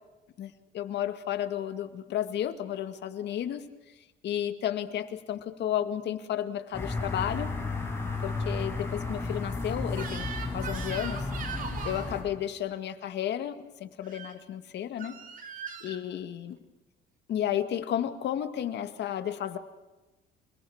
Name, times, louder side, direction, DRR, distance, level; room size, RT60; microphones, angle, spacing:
voice 1, 0.4-3.7 4.2-7.5 8.2-11.3 11.8-15.2 15.8-16.6 17.3-19.6, left 10 dB, 65° left, 9 dB, 2.2 m, -32 dB
sound 1, 6.7-12.2, left 3 dB, 10° left, 7.2 m, -33 dB
Crying sobbing / Screech, 9.9-12.1 14.0-14.3 15.0-16.0, right 6 dB, 45° right, 3.8 m, -40 dB
28.0 x 19.5 x 7.3 m, 1.1 s
cardioid pair, 140°, 19 cm